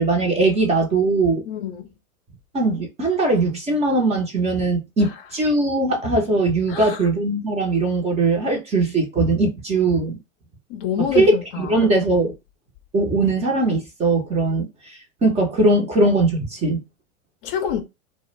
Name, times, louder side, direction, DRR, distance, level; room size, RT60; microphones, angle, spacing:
voice 1, 0.0-1.4 2.5-10.2 11.1-12.3 12.9-16.8, right 2 dB, 15° right, 0.5 m, -20 dB
voice 2, 1.5-1.9 6.7-7.0 10.7-11.7 17.4-17.8, left 8 dB, 40° left, 0.5 m, -26 dB
2.1 x 2.0 x 3.1 m
figure-of-eight pair, 95°, 42 cm